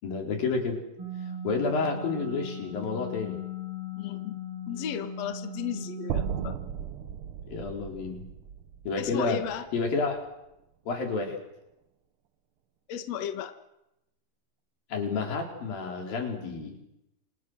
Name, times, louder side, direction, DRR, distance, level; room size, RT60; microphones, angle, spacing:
voice 1, 0.0-0.8 1.4-3.4 7.5-8.3 8.9-9.4 9.7-10.2 10.9-11.4 14.9-16.8, left 4 dB, 85° left, 3 dB, 6.0 m, -30 dB
sound 1, 1.0-6.5, left 2 dB, 35° right, 6.4 m, -38 dB
voice 2, 4.0-4.4 4.7-6.5 9.0-9.6 12.9-13.5, left 9 dB, 55° left, 8 dB, 2.4 m, -34 dB
sound 2, 6.1-10.3, right 8 dB, 85° right, 1.2 m, -36 dB
28.0 x 28.0 x 6.4 m, 0.88 s
omnidirectional pair, 4.0 m